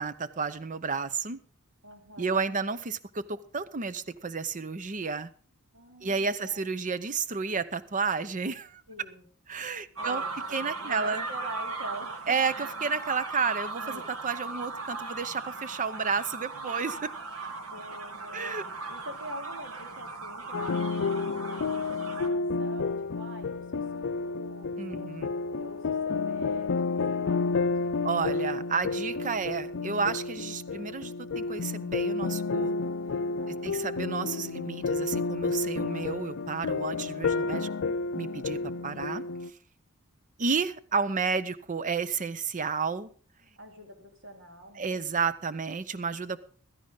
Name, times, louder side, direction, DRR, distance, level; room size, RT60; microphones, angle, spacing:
voice 1, 0.0-1.4 2.2-5.3 6.0-8.8 9.5-10.2 10.5-11.2 12.3-17.1 18.3-18.6 24.8-25.3 28.0-32.7 33.6-37.7 38.1-39.2 40.4-43.1 44.8-46.4, right 5 dB, 35° right, 14 dB, 0.7 m, -31 dB
voice 2, 1.8-2.4 5.7-6.7 8.9-9.3 10.0-12.5 17.6-18.6 18.9-25.1 25.5-28.1 33.4-33.8 43.6-45.0, equal, 60° right, 2 dB, 3.2 m, -45 dB
sound 1, 10.0-22.3, right 3 dB, 85° right, 2.0 m, -38 dB
sound 2, 20.5-39.5, left 4 dB, 60° left, 0.5 m, -31 dB
16.0 x 13.5 x 3.9 m, 0.43 s
head